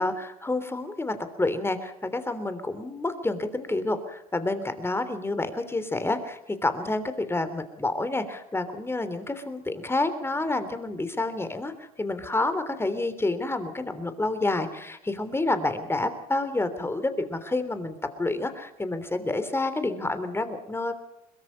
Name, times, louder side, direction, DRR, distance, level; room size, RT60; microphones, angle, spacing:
voice 1, 0.0-20.9, left 2 dB, 15° left, 10 dB, 3.3 m, -29 dB
22.0 x 22.0 x 5.4 m, 0.83 s
hypercardioid pair, 75°, 19 cm